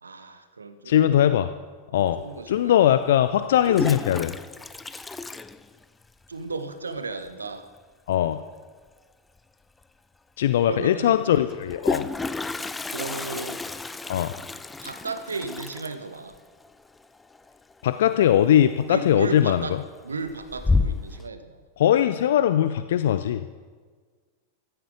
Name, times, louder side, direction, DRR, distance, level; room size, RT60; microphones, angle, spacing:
voice 1, 0.0-1.3 2.2-3.0 6.3-7.7 10.6-11.2 12.9-13.6 14.8-16.4 18.9-21.6, right 3 dB, 75° right, 10 dB, 1.2 m, -34 dB
voice 2, 0.9-1.5 1.9-2.2 2.5-4.3 8.1-8.4 10.4-12.1 14.1-14.3 17.8-19.6 21.8-23.4, left 11 dB, 60° left, 11 dB, 0.5 m, -20 dB
Toilet flush, 2.1-2.2 3.4-6.3 6.5-6.6 6.9-7.0 7.3-7.6 9.4-9.5 9.8-9.9 11.5-18.1 18.4-18.9 19.3-19.8 20.2-21.2, left 3 dB, 10° left, 0.6 m, -31 dB
14.5 x 14.5 x 4.9 m, 1.5 s
figure-of-eight pair, 90°, 0 cm